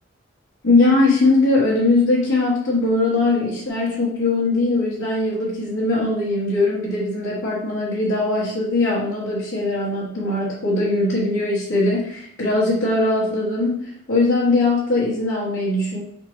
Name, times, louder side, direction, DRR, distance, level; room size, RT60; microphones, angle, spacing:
voice 1, 0.6-16.0, left 2 dB, 55° left, -8 dB, 1.3 m, -20 dB
4.5 x 3.7 x 3.1 m, 0.71 s
head